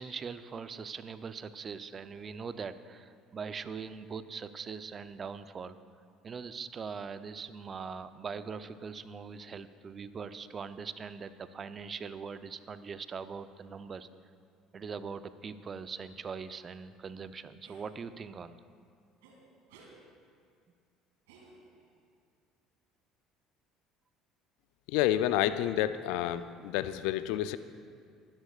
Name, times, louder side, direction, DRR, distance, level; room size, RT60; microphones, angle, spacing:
voice 1, 0.0-5.8 6.2-14.1 14.7-18.6, right 5 dB, 40° right, 12 dB, 0.6 m, -41 dB
sound 1, 17.6-17.9 19.2-19.4 19.7-20.0 21.3-21.9, right 3 dB, 80° right, 2.3 m, -56 dB
voice 2, 24.9-27.6, left 12 dB, 70° left, 13 dB, 0.4 m, -29 dB
20.0 x 13.5 x 2.5 m, 2.2 s
hypercardioid pair, 65°, 0 cm